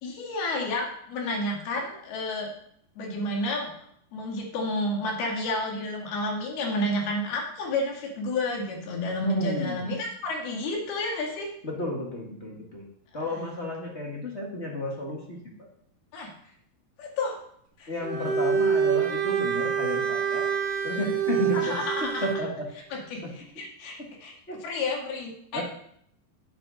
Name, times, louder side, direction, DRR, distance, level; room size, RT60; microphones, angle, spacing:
voice 1, 0.0-2.5 3.0-3.7 4.1-11.5 16.1-16.3 17.0-17.4 17.8-17.9 21.5-22.3 22.9-24.3 24.6-25.6, left 2 dB, 85° left, 0 dB, 4.2 m, -30 dB
voice 2, 9.2-9.9 11.6-12.9 13.1-15.7 17.9-20.5 20.8-22.7 23.2-23.3 24.0-24.1 24.5-24.6 25.5-25.6, left 1 dB, 35° left, -1 dB, 1.1 m, -32 dB
Bowed string instrument, 18.0-22.5, right 7 dB, 85° right, 1.3 m, -26 dB
9.0 x 7.8 x 6.5 m, 0.68 s
omnidirectional pair, 4.3 m